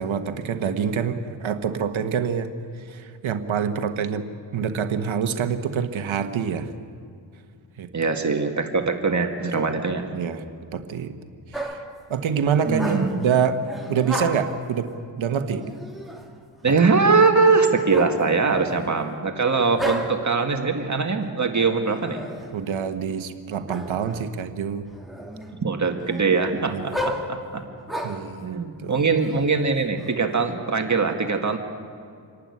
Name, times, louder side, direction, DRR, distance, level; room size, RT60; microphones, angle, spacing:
voice 1, 0.0-2.5 2.8-4.3 4.5-6.7 7.8-7.9 9.4-9.6 10.1-10.4 10.7-11.1 11.5-11.8 12.1-13.6 13.9-14.9 15.2-15.7 16.7-16.8 18.8-18.9 22.5-24.8 26.7-26.9 28.0-29.0, right 7 dB, 75° right, 8 dB, 1.4 m, -26 dB
voice 2, 7.9-10.0 12.7-13.1 16.6-22.3 25.6-27.6 28.4-31.6, right 4 dB, 35° right, 4 dB, 2.0 m, -22 dB
sound 1, 11.5-12.0 12.7-13.3 13.6-14.6 15.6-16.3 17.9-18.9 19.8-20.4 21.8-22.5 23.7-24.2 24.7-25.6 26.0-28.3 29.0-30.1, equal, ahead, 2.4 m, -33 dB
27.0 x 11.5 x 9.8 m, 2.3 s
cardioid pair, 75°, 48 cm